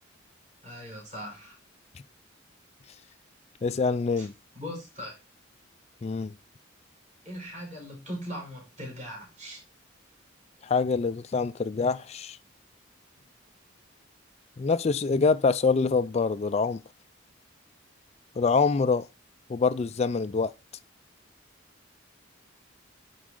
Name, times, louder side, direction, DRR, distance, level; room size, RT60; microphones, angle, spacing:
voice 1, 0.6-1.6 4.2-4.3 4.5-5.2 7.3-9.6 13.2-13.3, equal, 35° right, 5.2 m, -40 dB
voice 2, 3.6-4.3 6.0-6.3 10.6-12.4 14.6-16.8 18.4-19.1 19.5-20.5, left 4 dB, 30° left, 0.3 m, -25 dB
11.0 x 4.7 x 3.7 m
head